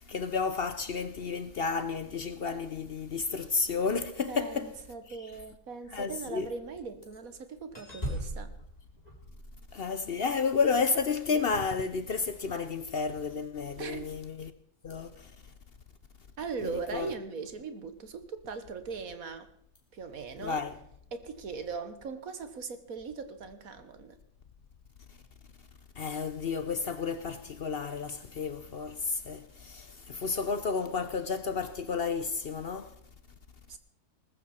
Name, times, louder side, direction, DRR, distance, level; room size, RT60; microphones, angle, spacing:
voice 1, 0.1-4.7 5.9-6.5 9.7-14.5 14.8-15.1 16.6-17.1 20.4-20.7 26.0-32.9, left 5 dB, 50° left, 0.7 m, -31 dB
voice 2, 4.3-8.5 13.8-14.1 16.4-19.5 19.9-20.7 21.1-24.2 33.7-33.8, right 5 dB, 55° right, 1.7 m, -39 dB
sound 1, 6.8-7.2 7.7-10.1 12.9-13.2 14.2-14.4 14.8-15.0 19.8-19.9, equal, 25° left, 3.0 m, -40 dB
19.5 x 14.0 x 4.3 m
omnidirectional pair, 1.8 m